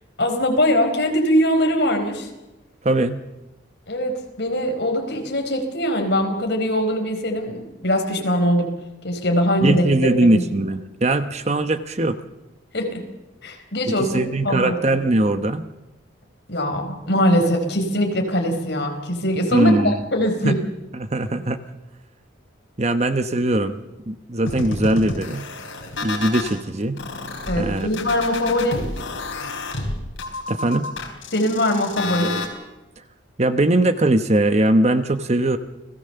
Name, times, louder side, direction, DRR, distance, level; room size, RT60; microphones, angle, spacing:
voice 1, 0.2-2.3 3.9-8.7 9.0-9.8 10.3-10.4 12.7-13.0 13.4-14.7 16.5-20.6 27.5-28.9 31.3-32.4, equal, 55° left, 3 dB, 4.4 m, -22 dB
voice 2, 2.8-3.2 9.6-12.2 13.9-15.6 19.5-20.0 20.4-20.6 20.9-21.6 22.8-25.5 26.0-27.0 27.6-27.9 30.5-30.9 33.4-35.6, right 1 dB, 35° right, 10 dB, 1.0 m, -20 dB
sound 1, 24.5-26.5 27.0-32.5, left 3 dB, 75° left, 4.2 m, -30 dB
29.5 x 18.0 x 6.9 m, 1.0 s
head